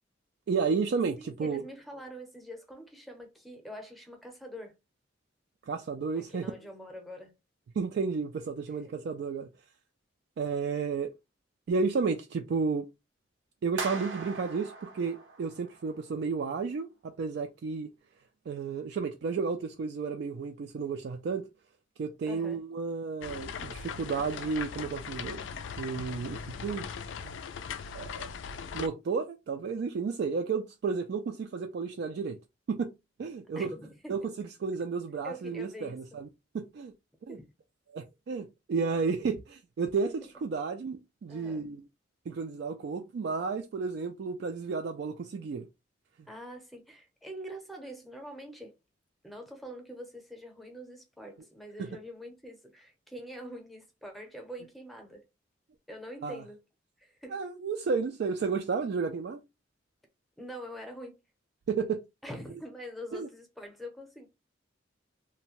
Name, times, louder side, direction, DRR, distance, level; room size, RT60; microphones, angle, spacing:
voice 1, 0.5-1.6 5.7-6.4 7.8-9.5 10.4-11.1 11.7-12.9 13.6-17.9 18.5-21.5 22.0-25.4 25.8-26.9 27.2-27.3 27.9-28.3 28.7-32.4 32.7-32.9 33.2-33.7 34.1-36.3 36.5-36.9 37.3-37.4 37.9-41.8 42.3-45.7 51.8-51.9 56.2-56.4 57.3-59.4 61.7-62.0 63.1-63.3, right 5 dB, 60° right, 0.3 m, -32 dB
voice 2, 1.2-4.7 6.2-7.3 8.8-9.0 22.2-22.6 33.6-34.2 35.2-36.0 37.3-37.4 41.3-41.7 46.3-48.7 49.2-55.2 55.9-56.6 57.0-57.4 60.4-61.1 62.2-64.3, equal, ahead, 0.7 m, -44 dB
sound 1, 13.8-16.0, right 4 dB, 85° right, 0.7 m, -40 dB
sound 2, 23.2-28.9, left 6 dB, 75° left, 0.3 m, -39 dB
2.7 x 2.1 x 2.9 m
head